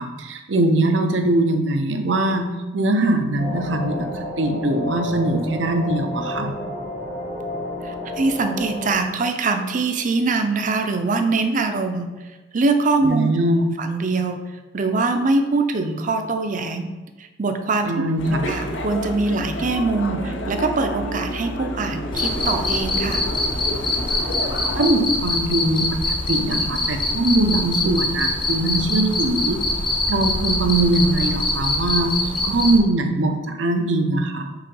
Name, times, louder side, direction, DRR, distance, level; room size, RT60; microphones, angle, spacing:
voice 1, 0.0-6.5 13.0-13.8 17.9-18.5 24.7-29.6 30.1-34.5, right 2 dB, 80° right, 5 dB, 0.7 m, -21 dB
sound 1, 3.4-8.9, left 1 dB, 60° left, 1.5 m, -31 dB
voice 2, 7.8-12.1 12.5-13.3 13.8-14.4 14.7-16.9 17.2-17.9 18.5-23.2 32.5-32.6, right 3 dB, 45° right, 7 dB, 0.5 m, -23 dB
sound 2, 18.2-24.9, equal, 80° left, 0.6 m, -29 dB
Cricket, 22.1-32.8, left 2 dB, 25° left, 0.7 m, -24 dB
4.8 x 3.7 x 5.3 m, 1.2 s
head